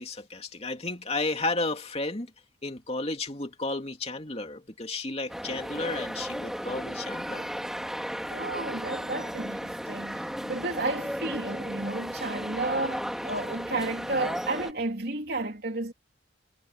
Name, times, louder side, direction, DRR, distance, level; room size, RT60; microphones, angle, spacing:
voice 1, 0.0-2.3 2.6-7.5, left 2 dB, 30° left, 2.7 m, -32 dB
sound 1, 5.3-14.7, equal, ahead, 2.4 m, -35 dB
voice 2, 8.3-15.9, right 2 dB, 55° right, 3.6 m, -32 dB
head